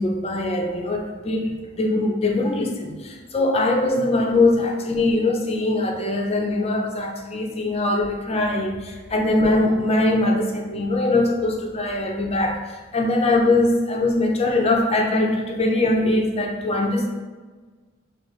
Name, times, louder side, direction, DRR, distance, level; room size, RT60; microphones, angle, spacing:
voice 1, 0.0-17.1, left 2 dB, 30° left, 1 dB, 0.5 m, -22 dB
6.2 x 2.4 x 3.1 m, 1.4 s
head